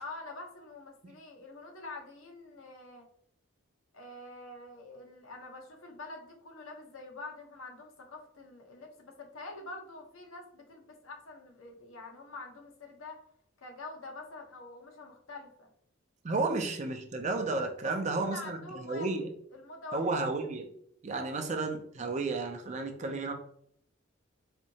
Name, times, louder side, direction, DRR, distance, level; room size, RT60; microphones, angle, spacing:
voice 1, 0.0-3.1 3.9-13.2 13.6-15.7 18.0-19.1 19.5-20.1, left 2 dB, 75° left, 2 dB, 0.9 m, -46 dB
voice 2, 16.2-18.6 18.8-19.3 19.9-20.7 21.0-23.3, right 3 dB, 35° right, 5 dB, 0.4 m, -32 dB
4.3 x 2.7 x 2.8 m, 0.66 s
head